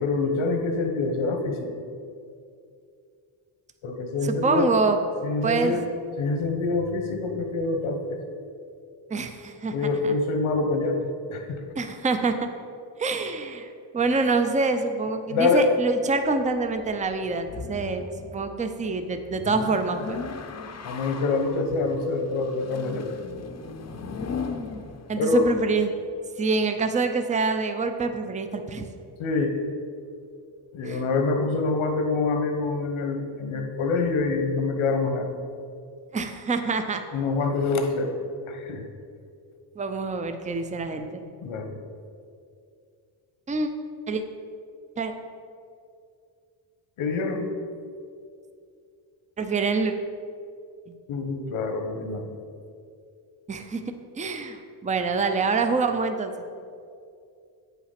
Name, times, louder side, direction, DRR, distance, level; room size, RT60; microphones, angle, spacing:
voice 1, 0.0-1.7 3.8-4.7 5.2-5.9 6.2-8.2 9.7-11.6 15.3-15.7 20.8-23.1 25.2-25.5 29.2-29.6 30.7-35.3 37.1-38.2 38.5-38.9 41.4-41.7 47.0-47.5 51.1-52.3, left 3 dB, 80° left, 5 dB, 1.3 m, -26 dB
voice 2, 4.4-5.0 5.4-5.8 9.1-9.7 10.0-10.1 11.7-12.5 13.0-13.7 13.9-20.2 25.1-25.9 26.4-28.8 30.8-31.0 36.1-37.0 39.8-41.2 43.5-43.7 44.1-44.2 45.0-45.1 49.4-49.9 50.9-51.0 53.5-53.8 54.2-56.5, right 4 dB, 15° right, 7 dB, 0.5 m, -26 dB
sound 1, 16.2-25.9, left 4 dB, 35° left, 0.7 m, -38 dB
8.8 x 5.8 x 5.8 m, 2.4 s
cardioid pair, 135°, 47 cm